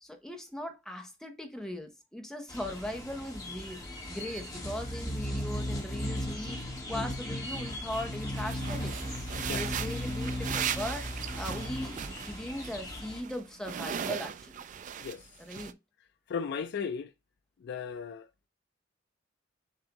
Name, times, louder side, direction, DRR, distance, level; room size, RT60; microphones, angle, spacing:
voice 1, 0.0-3.8 4.1-6.6 6.9-9.0 9.5-14.6 15.4-15.8, left 1 dB, 5° left, 0.8 m, -39 dB
sound 1, 2.5-13.2, left 1 dB, 20° left, 1.4 m, -36 dB
sound 2, 8.4-12.8 13.0-15.2 15.5-15.7, right 8 dB, 40° right, 0.3 m, -38 dB
voice 2, 16.3-17.1 17.6-18.5, left 6 dB, 60° left, 0.4 m, -36 dB
6.8 x 2.6 x 2.9 m
head